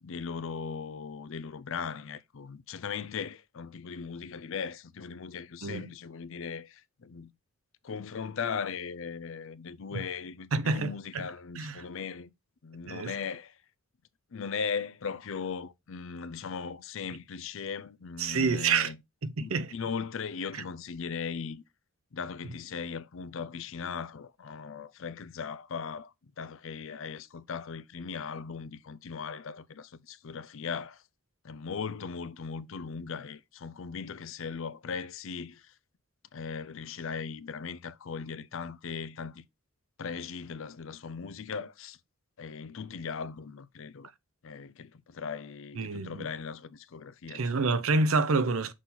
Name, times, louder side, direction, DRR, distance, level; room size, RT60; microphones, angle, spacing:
voice 1, 0.0-7.3 7.8-12.3 12.6-13.6 14.3-19.0 19.4-21.6 22.1-31.0 31.4-35.7 36.3-39.4 40.0-42.0 42.4-44.1 44.4-47.8, left 6 dB, 65° left, 0.5 m, -38 dB
voice 2, 10.5-11.3 11.6-11.8 12.9-13.1 18.2-18.9 19.2-19.7 45.8-46.3 47.3-48.7, right 4 dB, 85° right, 0.7 m, -28 dB
6.2 x 4.2 x 3.8 m
head